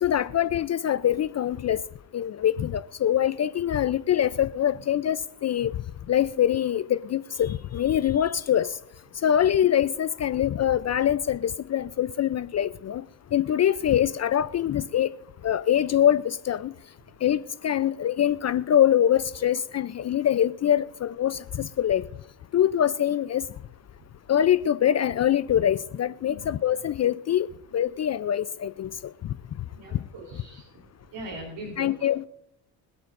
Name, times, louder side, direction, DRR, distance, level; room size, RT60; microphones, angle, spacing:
voice 1, 0.0-1.8 2.1-5.7 6.1-8.8 9.2-13.0 13.3-15.1 15.4-16.7 17.2-22.0 22.5-23.4 24.3-27.5 27.7-28.9 29.2-29.3 31.8-32.2, left 10 dB, 35° left, 0.5 m, -24 dB
voice 2, 29.7-30.7 31.1-32.1, right 1 dB, 65° right, 3.7 m, -40 dB
25.0 x 8.7 x 2.6 m
supercardioid pair, 70°, 48 cm